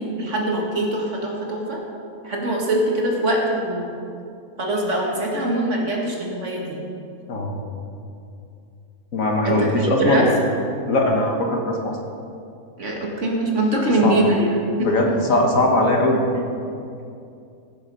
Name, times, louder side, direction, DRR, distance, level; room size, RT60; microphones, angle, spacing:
voice 1, 0.0-1.8 2.2-3.9 4.6-6.8 9.4-10.3 12.8-14.9, right 1 dB, 50° right, -1 dB, 2.1 m, -23 dB
voice 2, 7.3-7.6 9.1-10.3 10.9-12.0 14.0-14.1 14.8-16.2, left 1 dB, 60° left, 1 dB, 1.7 m, -20 dB
16.0 x 7.9 x 5.4 m, 2.5 s
omnidirectional pair, 1.7 m